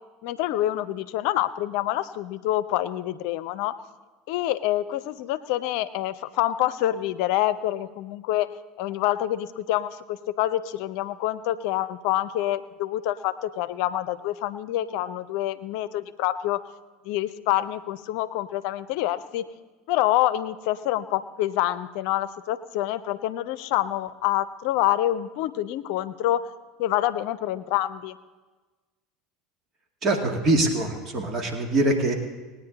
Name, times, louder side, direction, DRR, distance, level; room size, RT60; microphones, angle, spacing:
voice 1, 0.2-3.7 4.3-8.5 8.8-16.6 17.0-19.4 19.9-26.5 26.8-28.2, left 14 dB, 65° left, 14 dB, 0.6 m, -26 dB
voice 2, 30.0-32.1, right 2 dB, 40° right, 2 dB, 2.2 m, -23 dB
19.5 x 9.6 x 4.0 m, 1.3 s
hypercardioid pair, 75°, 0 cm